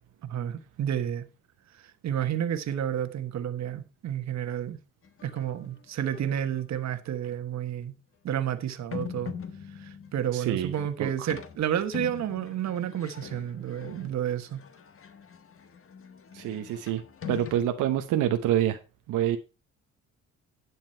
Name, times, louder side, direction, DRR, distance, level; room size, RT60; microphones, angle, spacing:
voice 1, 0.2-1.3 1.7-4.8 5.2-7.9 8.2-9.3 9.7-14.6, right 10 dB, 65° right, 1.3 m, -31 dB
sound 1, 5.0-5.5 6.0-6.6 7.3-7.4 8.9-17.6, left 7 dB, 45° left, 1.4 m, -43 dB
voice 2, 10.3-10.7 11.0-11.3 16.3-17.0 17.3-18.8 19.1-19.4, right 11 dB, 90° right, 1.0 m, -27 dB
11.0 x 7.3 x 4.4 m
cardioid pair, 90°, 30 cm